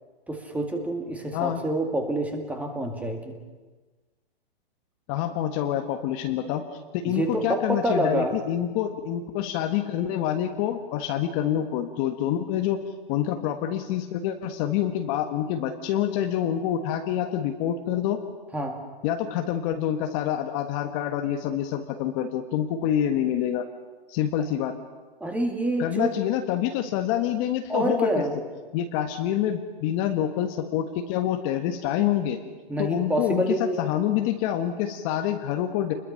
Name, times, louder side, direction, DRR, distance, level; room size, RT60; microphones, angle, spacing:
voice 1, 0.3-3.4 7.0-8.3 18.5-18.8 25.2-26.1 27.7-28.3 32.7-33.9, right 1 dB, 5° right, 4 dB, 2.1 m, -27 dB
voice 2, 5.1-6.6 6.9-12.8 13.1-18.2 19.0-23.6 24.1-24.8 25.8-28.2 28.7-32.4 32.8-35.9, left 10 dB, 35° left, 6 dB, 1.5 m, -27 dB
27.5 x 21.5 x 5.8 m, 1.3 s
hypercardioid pair, 145°, 30 cm